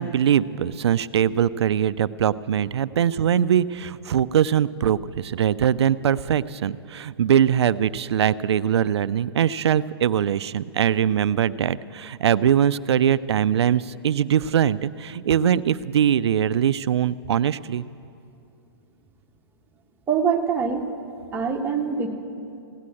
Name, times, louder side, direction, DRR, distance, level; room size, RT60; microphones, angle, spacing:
voice 1, 0.0-17.8, right 9 dB, 80° right, 17 dB, 0.4 m, -22 dB
voice 2, 20.1-20.9 21.3-22.1, right 6 dB, 15° right, 2 dB, 1.2 m, -24 dB
16.0 x 9.6 x 7.7 m, 2.6 s
hypercardioid pair, 130°, 14 cm